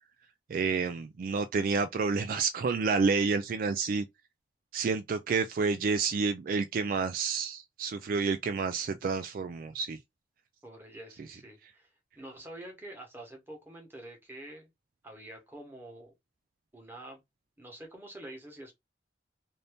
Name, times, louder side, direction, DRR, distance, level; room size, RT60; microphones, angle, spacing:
voice 1, 0.5-4.0 4.7-10.0, right 4 dB, 50° right, 0.3 m, -29 dB
voice 2, 10.6-11.9 12.2-14.7 15.0-16.1 16.7-17.2 17.6-18.8, right 1 dB, 10° right, 1.1 m, -47 dB
2.6 x 2.6 x 3.4 m
head